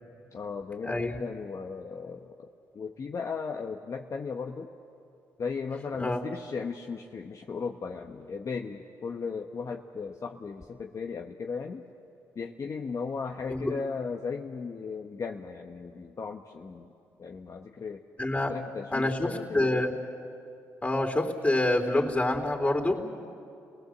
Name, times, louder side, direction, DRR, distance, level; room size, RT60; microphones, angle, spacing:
voice 1, 0.3-2.3 2.7-4.7 5.4-11.8 12.4-16.9 17.2-18.0 18.5-19.8, left 5 dB, 50° left, 2 dB, 1.2 m, -36 dB
voice 2, 0.8-1.2 6.0-6.2 13.5-13.7 18.2-18.5 18.9-19.9 20.8-23.0, left 1 dB, 20° left, 3 dB, 3.7 m, -27 dB
30.0 x 19.0 x 8.0 m, 2.6 s
supercardioid pair, 60°, 7 cm